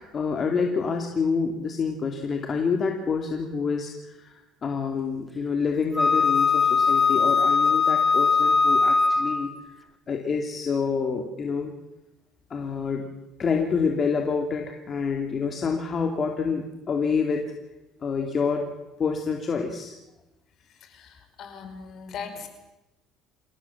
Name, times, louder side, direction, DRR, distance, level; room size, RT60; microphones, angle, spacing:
voice 1, 0.0-9.5 10.1-11.7 12.5-13.1 13.4-17.5 18.0-18.7 19.0-19.9, left 5 dB, 35° left, 3 dB, 2.7 m, -27 dB
Wind instrument woodwind instrument, 6.0-9.5, left 5 dB, 10° left, 1.5 m, -20 dB
voice 2, 21.4-22.5, left 6 dB, 55° left, 7 dB, 5.1 m, -38 dB
27.5 x 17.5 x 7.3 m, 0.99 s
cardioid pair, 115°, 0 cm